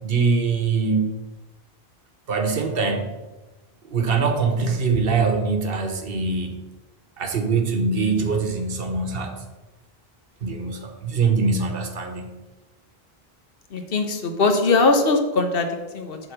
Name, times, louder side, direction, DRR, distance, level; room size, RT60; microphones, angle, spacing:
voice 1, 0.0-1.1 2.3-3.1 3.9-6.6 7.2-9.4 10.4-12.3, right 4 dB, 65° right, 5 dB, 1.2 m, -23 dB
voice 2, 13.7-15.7 15.9-16.2, left 3 dB, 65° left, 5 dB, 1.1 m, -20 dB
7.7 x 4.1 x 6.6 m, 1.2 s
omnidirectional pair, 1.0 m